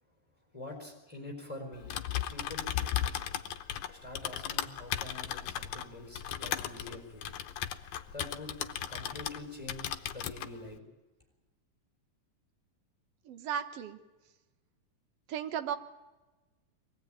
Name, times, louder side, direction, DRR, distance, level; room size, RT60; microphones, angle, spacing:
voice 1, 0.5-1.9 2.3-2.7 3.9-7.3 8.1-8.5 8.9-10.8, left 2 dB, 10° left, 1 dB, 4.1 m, -45 dB
Typing, 1.7-9.4 9.7-10.5, left 11 dB, 70° left, 2.2 m, -36 dB
voice 2, 13.3-14.0 15.3-15.8, right 8 dB, 60° right, 8 dB, 1.9 m, -35 dB
24.0 x 18.0 x 8.9 m, 1.2 s
omnidirectional pair, 3.8 m